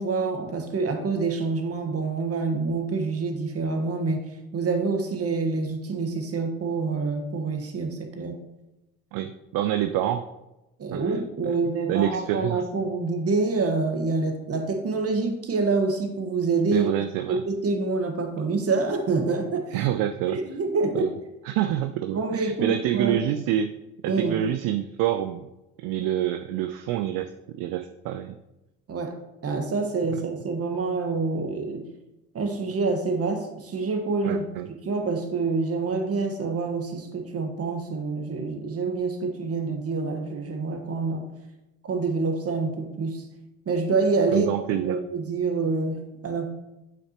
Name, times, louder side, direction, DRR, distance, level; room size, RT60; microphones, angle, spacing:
voice 1, 0.0-4.3 4.5-8.4 10.8-16.9 17.3-19.8 20.3-21.1 22.1-23.2 24.1-24.4 28.9-31.8 32.3-34.4 34.8-41.3 41.8-43.2 43.6-44.5 44.8-46.4, right 4 dB, 35° right, 5 dB, 1.4 m, -27 dB
voice 2, 9.1-10.3 10.9-11.2 11.5-11.6 11.9-12.6 16.7-17.4 19.7-20.4 20.9-21.1 21.5-23.7 24.0-25.5 25.8-28.4 34.2-34.7 44.3-45.0, right 11 dB, 50° right, 9 dB, 0.5 m, -27 dB
8.0 x 5.8 x 3.0 m, 0.97 s
hypercardioid pair, 70°, 42 cm